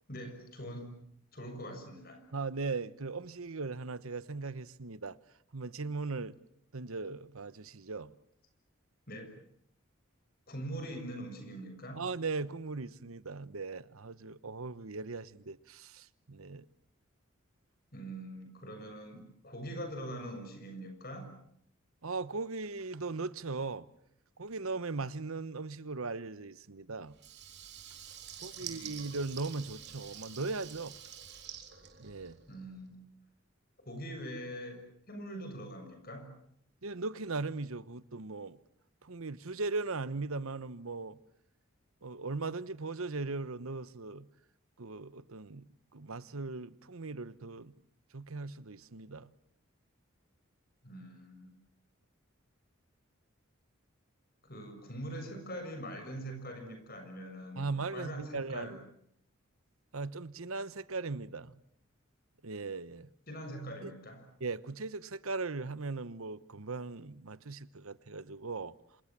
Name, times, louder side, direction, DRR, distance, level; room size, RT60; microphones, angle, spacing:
voice 1, 0.1-0.9 1.3-2.2 9.1-9.3 10.5-12.0 17.9-21.3 28.6-29.0 32.5-33.0 33.9-36.3 50.8-51.5 54.4-58.8 63.3-64.3, equal, 45° left, 7.0 m, -43 dB
voice 2, 2.3-5.2 5.5-6.4 6.7-8.1 12.0-16.7 22.0-23.9 24.4-27.1 28.4-30.9 32.0-32.4 36.8-38.6 39.0-41.2 42.0-44.3 44.8-45.7 45.9-47.7 48.1-49.3 57.6-58.8 59.9-61.6 62.4-63.1 63.8-63.9 64.4-68.7, right 3 dB, 90° right, 1.1 m, -38 dB
Water tap faucet / Liquid, 27.1-32.6, right 9 dB, 50° right, 3.9 m, -47 dB
27.5 x 27.0 x 7.5 m
head